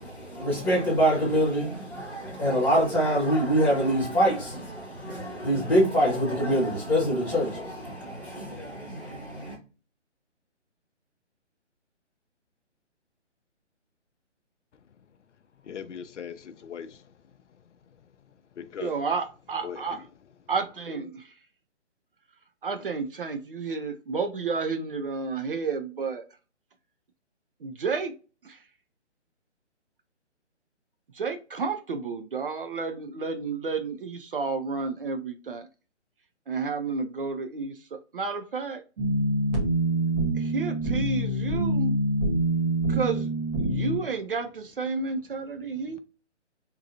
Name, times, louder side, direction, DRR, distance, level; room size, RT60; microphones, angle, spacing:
voice 1, 0.0-9.5, equal, 5° left, 1.1 m, -25 dB
voice 2, 15.7-17.0 18.6-18.9 19.6-19.8, left 8 dB, 75° left, 0.5 m, -39 dB
voice 3, 18.8-20.0 20.5-21.3 22.6-26.2 27.6-28.1 28.4-28.6 31.1-35.7 36.5-38.8 40.3-41.9 42.9-43.3 43.6-46.0, right 4 dB, 50° right, 0.5 m, -31 dB
sound 1, 39.0-44.0, right 1 dB, 35° right, 1.5 m, -25 dB
3.7 x 2.9 x 2.7 m
figure-of-eight pair, 145°, 36 cm